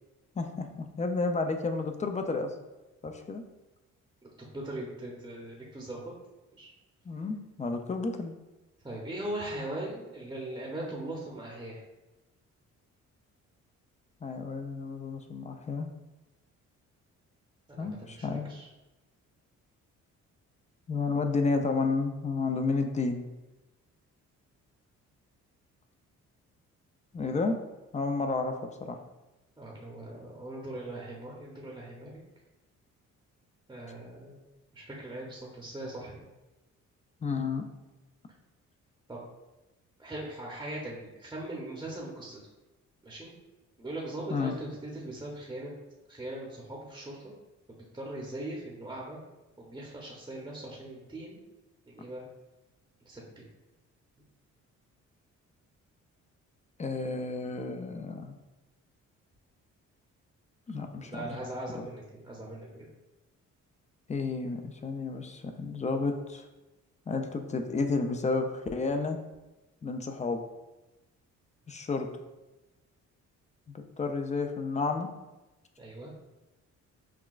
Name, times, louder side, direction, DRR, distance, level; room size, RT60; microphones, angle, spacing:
voice 1, 0.4-2.5 3.0-3.4 7.1-8.3 14.2-15.9 17.8-18.5 20.9-23.2 27.1-27.6 27.9-29.0 37.2-37.7 44.3-44.5 56.8-58.4 60.7-61.4 61.7-61.9 64.1-66.5 67.1-69.2 69.8-70.4 71.7-72.1 73.7-75.1, left 3 dB, 25° left, 6 dB, 0.4 m, -31 dB
voice 2, 4.4-6.0 6.6-6.7 8.8-11.8 17.7-18.7 29.6-32.1 33.7-34.4 34.7-36.3 39.1-39.2 40.0-42.4 43.0-43.3 43.8-45.7 46.1-47.3 47.7-49.2 49.6-51.4 51.9-52.2 53.0-53.5 61.0-62.9 75.8-76.1, right 1 dB, 15° right, -3 dB, 0.7 m, -40 dB
5.8 x 2.2 x 2.4 m, 1.0 s
cardioid pair, 90°, 30 cm